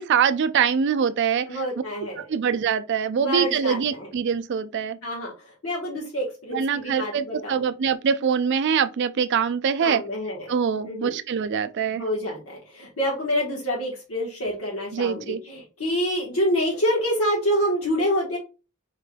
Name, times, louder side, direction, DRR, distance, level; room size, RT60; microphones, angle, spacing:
voice 1, 0.0-1.6 2.2-5.0 6.5-10.0 10.5-12.0 14.9-15.4, right 7 dB, 55° right, 0.4 m, -24 dB
voice 2, 1.5-2.3 3.2-4.1 5.0-5.3 5.6-7.6 9.8-10.5 10.7-11.2 11.9-18.4, equal, 70° left, 1.3 m, -27 dB
4.3 x 3.3 x 2.2 m
head